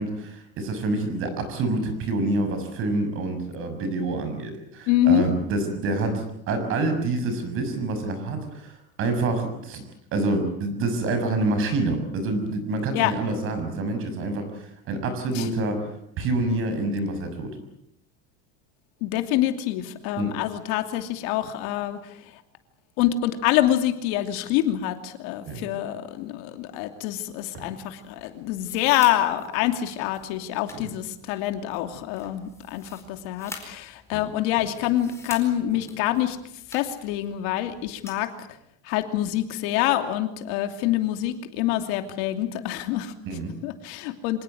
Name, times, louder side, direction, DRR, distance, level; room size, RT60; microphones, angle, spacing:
voice 1, 0.0-9.8 10.1-15.8 16.2-17.5 20.2-20.3 25.5-25.6 27.5-27.7 30.7-30.9 34.1-34.2 43.2-43.5, right 2 dB, 40° right, 8 dB, 6.4 m, -27 dB
voice 2, 4.9-5.3 12.9-13.1 15.3-15.5 19.0-22.0 23.0-36.4 36.7-38.3 38.8-43.1 43.6-44.4, left 13 dB, 65° left, 7 dB, 2.9 m, -26 dB
sound 1, 28.0-38.3, left 3 dB, 10° left, 4.6 m, -46 dB
26.0 x 19.0 x 9.3 m, 0.76 s
cardioid pair, 175°, 33 cm